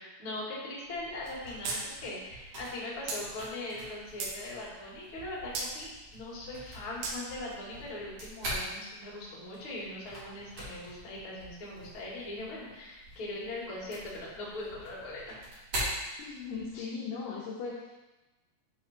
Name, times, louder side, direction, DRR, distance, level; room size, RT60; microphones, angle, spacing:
voice 1, 0.0-5.9 6.1-15.4 16.7-16.8, left 2 dB, 45° left, -7 dB, 1.9 m, -40 dB
sound 1, 0.8-16.8, right 1 dB, 45° right, 3.5 m, -43 dB
sound 2, 1.6-1.8 2.1-2.2 3.1-3.2 3.8-4.4 5.5-5.7 7.0-7.2, right 4 dB, 75° right, 2.2 m, -34 dB
voice 2, 16.2-17.9, left 5 dB, 75° left, -5 dB, 2.5 m, -38 dB
8.9 x 3.9 x 4.3 m, 1.1 s
omnidirectional pair, 5.6 m